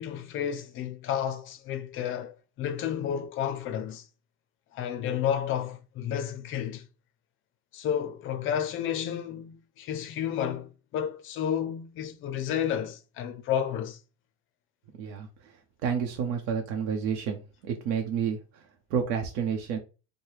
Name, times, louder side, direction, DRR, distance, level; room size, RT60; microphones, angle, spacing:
voice 1, 0.0-4.0 4.7-6.8 7.7-14.0, left 9 dB, 35° left, 0.5 m, -31 dB
voice 2, 15.8-18.4 18.9-19.8, right 7 dB, 80° right, 0.8 m, -29 dB
4.6 x 2.2 x 3.3 m
cardioid pair, 155°, 34 cm